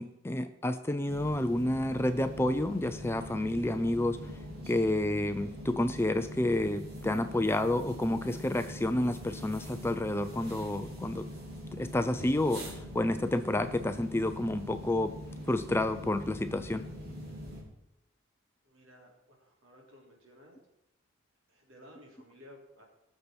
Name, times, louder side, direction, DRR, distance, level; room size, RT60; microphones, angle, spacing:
voice 1, 0.0-4.2 4.7-11.3 11.8-15.1 15.5-16.9, left 1 dB, 10° left, 9 dB, 0.4 m, -30 dB
sound 1, 1.1-17.6, equal, 50° right, 3.5 m, -43 dB
voice 2, 18.6-20.6 21.5-22.9, left 1 dB, 70° right, -1 dB, 3.7 m, -56 dB
20.0 x 6.8 x 4.5 m, 0.84 s
head